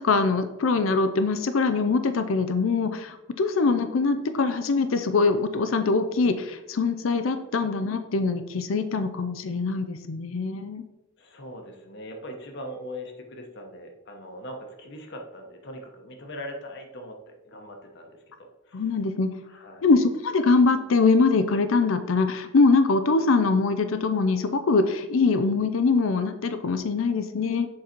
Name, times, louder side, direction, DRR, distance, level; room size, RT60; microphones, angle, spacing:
voice 1, 0.0-10.8 18.7-19.3 19.8-27.7, left 4 dB, 80° left, 10 dB, 0.5 m, -23 dB
voice 2, 11.2-18.9 19.4-19.9, equal, 60° left, 3 dB, 1.1 m, -41 dB
7.6 x 4.1 x 4.4 m, 0.96 s
head